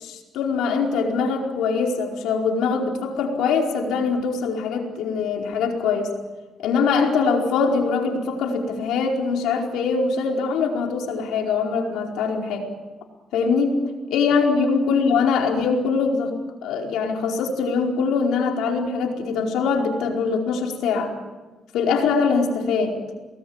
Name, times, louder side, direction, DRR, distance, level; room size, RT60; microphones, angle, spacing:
voice 1, 0.0-6.1 6.6-12.7 13.3-13.8 14.1-16.3 16.6-21.1 21.7-23.0, left 5 dB, 85° left, 1 dB, 4.8 m, -22 dB
28.0 x 20.5 x 8.9 m, 1.2 s
cardioid pair, 90°, 0 cm